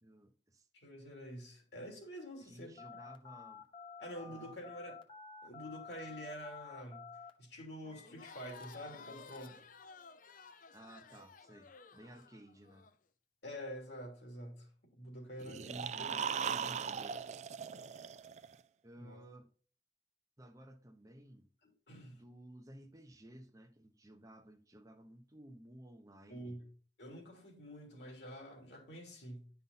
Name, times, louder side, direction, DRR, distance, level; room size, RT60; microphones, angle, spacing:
voice 1, 0.0-0.7 2.4-3.6 4.3-4.5 10.7-12.9 15.7-17.2 18.8-19.5 20.4-21.5 22.1-26.6, right 1 dB, 20° right, 0.8 m, -56 dB
voice 2, 0.7-2.7 4.0-5.0 5.4-7.1 7.4-9.6 13.4-14.7 15.0-16.1 16.4-16.8 19.0-19.2 21.6-22.2 26.3-26.7 27.0-29.5, equal, 65° left, 3.1 m, -47 dB
Telephone, 2.8-9.6, left 5 dB, 25° left, 1.0 m, -52 dB
Crowd, 8.0-12.9, left 4 dB, 45° left, 0.6 m, -55 dB
sound 1, 15.4-18.5, right 7 dB, 40° right, 0.3 m, -39 dB
10.5 x 5.6 x 4.1 m
head